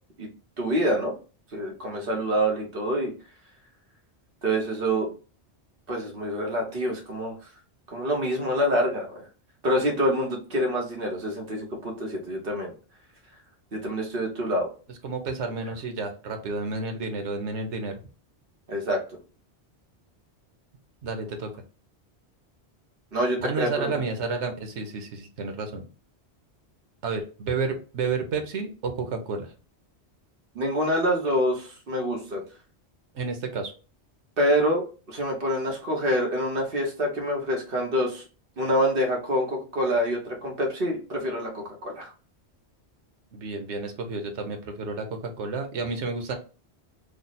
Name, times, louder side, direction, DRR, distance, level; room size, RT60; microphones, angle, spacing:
voice 1, 0.6-1.1 1.5-3.1 4.4-5.1 5.9-7.3 7.9-9.2 9.6-12.7 13.7-14.7 18.7-19.0 23.1-23.9 30.5-32.4 34.4-34.8 35.1-38.2 38.6-42.1, equal, 55° right, 0 dB, 1.1 m, -26 dB
voice 2, 15.0-17.9 21.0-21.5 23.4-25.8 27.0-29.5 33.1-33.7 43.3-46.3, right 4 dB, 90° right, 6 dB, 1.1 m, -31 dB
3.2 x 2.0 x 4.0 m, 0.35 s
omnidirectional pair, 1.1 m